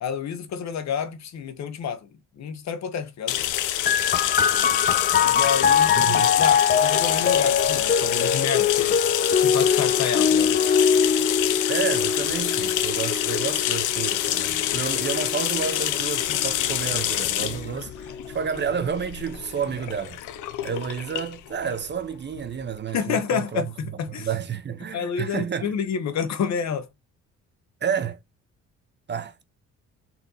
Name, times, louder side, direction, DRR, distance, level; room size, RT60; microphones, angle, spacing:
voice 1, 0.0-2.1 2.4-3.4 5.2-9.0 9.3-10.5 22.9-24.3 24.9-26.9, left 7 dB, 65° left, 0.9 m, -29 dB
sound 1, 3.3-22.7, left 12 dB, 80° left, 0.6 m, -27 dB
sound 2, 3.9-17.1 18.0-18.7, left 7 dB, 30° left, 0.5 m, -23 dB
voice 2, 5.9-6.3 11.7-20.2 20.6-23.6 24.1-25.7 27.8-28.2 29.1-29.4, right 7 dB, 35° right, 0.7 m, -30 dB
4.3 x 2.7 x 3.8 m
cardioid pair, 90°, 30 cm